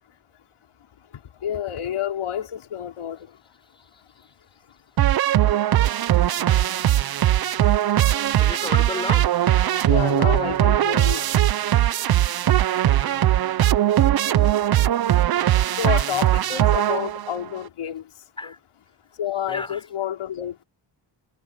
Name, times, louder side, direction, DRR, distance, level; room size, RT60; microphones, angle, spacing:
voice 1, 1.4-3.2 9.9-11.2 14.8-14.9 15.8-18.0 19.2-20.6, left 10 dB, 80° left, 4.7 m, -29 dB
voice 2, 3.7-4.3 8.4-9.9 12.5-13.3 14.3-14.5 18.4-18.6 19.5-19.9, left 2 dB, 10° left, 4.6 m, -35 dB
sound 1, 5.0-17.4, right 12 dB, 50° right, 0.6 m, -20 dB
wide cardioid pair, 180°, 49 cm